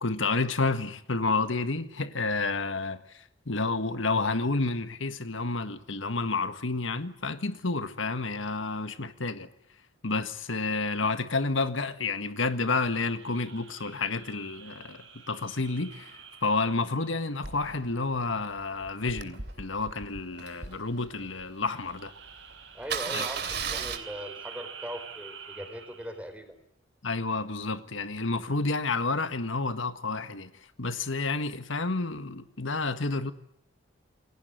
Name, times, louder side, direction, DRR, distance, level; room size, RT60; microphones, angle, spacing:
voice 1, 0.0-9.5 10.0-22.1 23.1-23.5 27.0-30.5 30.8-33.3, left 3 dB, 75° left, 1.7 m, -30 dB
sound 1, 13.0-17.8 21.6-26.3, right 7 dB, 75° right, 7.1 m, -48 dB
Engine starting, 17.4-21.6 22.1-22.2 22.4-22.5 22.8-24.0, right 6 dB, 55° right, 3.0 m, -36 dB
voice 2, 22.7-26.5, equal, 5° right, 4.6 m, -40 dB
28.5 x 22.0 x 9.4 m
head